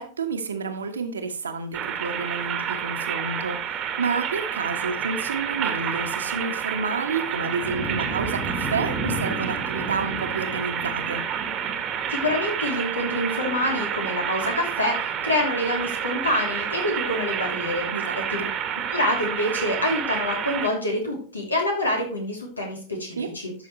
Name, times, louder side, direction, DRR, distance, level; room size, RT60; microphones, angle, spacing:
voice 1, 0.0-11.2 17.9-18.5 23.2-23.3, right 4 dB, 70° right, 7 dB, 1.3 m, -30 dB
sound 1, 1.7-20.7, right 8 dB, 30° right, 1.4 m, -29 dB
voice 2, 12.1-17.9 18.3-18.4 18.9-23.5, left 1 dB, 80° left, 1 dB, 3.1 m, -26 dB
12.5 x 6.3 x 3.2 m, 0.41 s
figure-of-eight pair, 90°, 0 cm